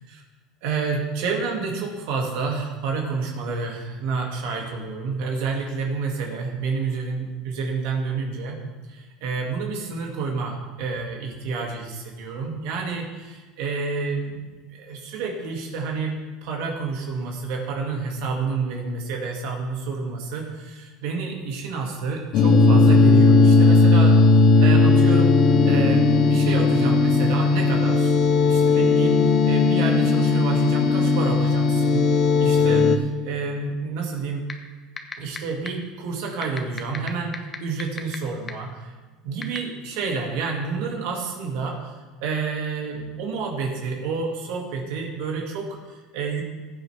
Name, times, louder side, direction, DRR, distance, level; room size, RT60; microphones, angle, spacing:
voice 1, 0.6-8.6 8.9-16.1 16.4-25.3 25.6-28.1 28.5-32.1 32.4-34.5 35.2-38.9 39.2-46.4, right 4 dB, 70° right, 0 dB, 2.1 m, -29 dB
sound 1, 22.3-33.0, left 3 dB, 50° left, 1.1 m, -17 dB
sound 2, 34.5-34.6 35.0-35.4 35.7-35.8 36.4-38.2 38.5-38.6 39.4-39.6, left 5 dB, 20° left, 1.0 m, -30 dB
15.0 x 9.1 x 3.4 m, 1.3 s
supercardioid pair, 135°, 0 cm